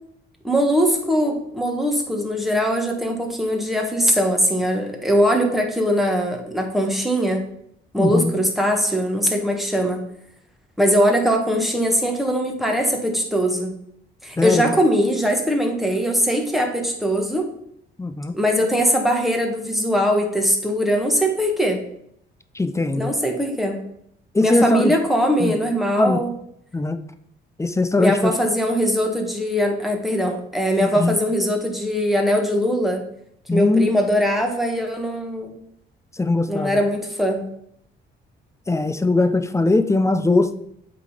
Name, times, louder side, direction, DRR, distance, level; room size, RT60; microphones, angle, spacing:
voice 1, 0.4-7.4 7.9-10.0 10.8-13.7 14.2-17.5 18.3-21.8 22.9-23.8 24.4-26.3 28.0-33.0 33.5-35.5 36.5-37.4, equal, ahead, 2 dB, 1.6 m, -21 dB
voice 2, 8.0-8.3 14.4-14.7 18.0-18.3 22.5-23.1 24.3-25.0 25.4-25.5 26.0-26.2 26.7-27.0 27.6-28.3 30.8-31.2 33.5-33.9 36.1-36.8 38.7-40.5, left 2 dB, 15° left, 10 dB, 0.6 m, -20 dB
8.2 x 3.9 x 5.1 m, 0.71 s
cardioid pair, 90°, 20 cm